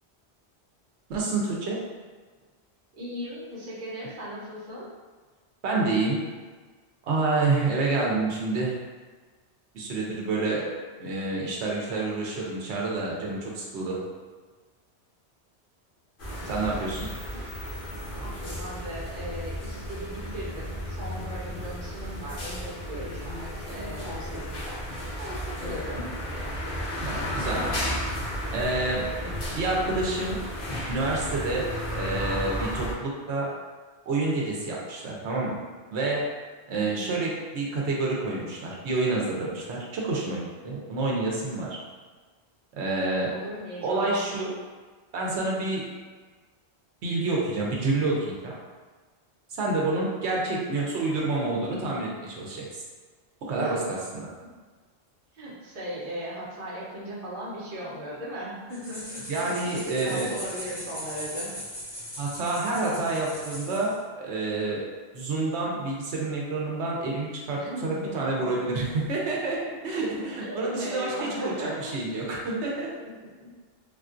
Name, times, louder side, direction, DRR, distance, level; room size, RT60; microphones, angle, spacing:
voice 1, 1.1-1.8 5.6-6.2 7.0-8.7 9.7-10.7 11.0-14.0 16.5-17.1 21.5-21.6 27.0-27.9 28.5-29.1 29.6-30.4 30.9-33.5 34.1-35.6 35.9-36.3 36.7-41.8 42.7-43.3 43.8-44.6 45.1-45.9 47.0-48.5 49.5-52.8 53.4-54.3 59.3-60.3 62.2-64.8 65.1-72.9, right 3 dB, 90° right, -3 dB, 1.0 m, -28 dB
voice 2, 2.9-4.9 17.3-17.4 17.9-26.1 36.7-37.2 43.1-44.4 53.5-53.9 55.3-59.3 59.6-61.5 67.6-68.9 70.1-71.9 73.0-73.5, equal, 50° right, -7 dB, 1.0 m, -38 dB
sound 1, 16.2-32.9, equal, 55° left, 1.0 m, -33 dB
sound 2, 58.7-64.0, equal, 30° left, 1.0 m, -39 dB
3.5 x 2.3 x 2.5 m, 1.4 s
omnidirectional pair, 1.1 m